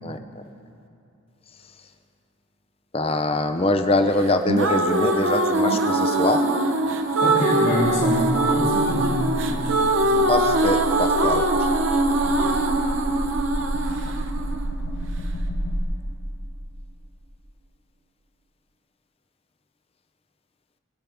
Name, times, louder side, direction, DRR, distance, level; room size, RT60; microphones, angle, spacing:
voice 1, 0.0-0.4 2.9-6.4 10.3-11.7, left 2 dB, 25° left, 7 dB, 0.6 m, -23 dB
sound 1, 4.2-15.3, right 2 dB, 60° right, 0.8 m, -22 dB
voice 2, 7.2-10.3 12.1-12.4, left 1 dB, 50° left, -9 dB, 2.6 m, -27 dB
sound 2, 8.9-15.8, equal, 75° left, 1.2 m, -30 dB
22.0 x 8.6 x 3.5 m, 2.6 s
head